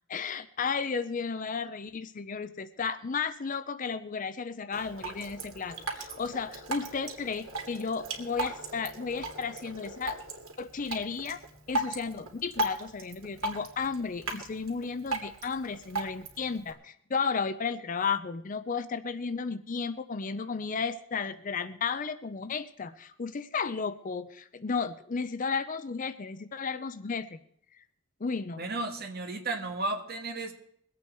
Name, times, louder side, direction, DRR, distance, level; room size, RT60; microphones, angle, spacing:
voice 1, 0.1-10.2 10.6-11.4 11.7-27.4 27.8-27.9 28.2-28.6, left 5 dB, 40° left, 13 dB, 0.5 m, -33 dB
Drip, 4.7-16.7, right 2 dB, 90° right, 2.6 m, -37 dB
voice 2, 28.6-30.5, right 2 dB, 50° right, 4 dB, 1.8 m, -33 dB
21.5 x 8.5 x 4.6 m, 0.68 s
head